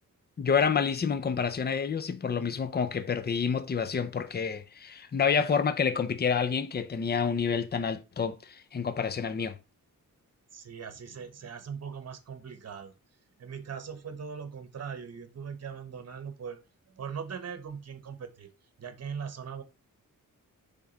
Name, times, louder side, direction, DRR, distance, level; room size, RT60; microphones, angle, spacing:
voice 1, 0.4-9.6, left 6 dB, 30° left, 0.6 m, -28 dB
voice 2, 10.5-12.9 13.4-16.6 16.9-18.5 18.8-19.6, right 6 dB, 50° right, 1.0 m, -40 dB
6.9 x 3.7 x 3.9 m
wide cardioid pair, 130°, 33 cm